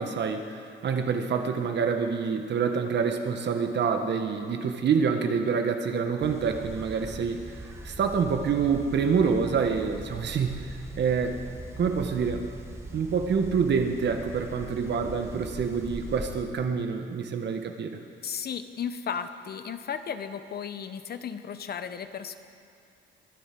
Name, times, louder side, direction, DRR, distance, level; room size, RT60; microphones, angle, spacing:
voice 1, 0.0-11.4 11.8-12.4 12.9-18.0, right 6 dB, 60° right, 5 dB, 1.5 m, -27 dB
sound 1, 6.2-16.4, right 2 dB, 15° right, 1.6 m, -41 dB
voice 2, 18.2-22.4, left 7 dB, 50° left, 10 dB, 0.9 m, -35 dB
22.5 x 8.2 x 6.1 m, 2.4 s
cardioid pair, 90°, 20 cm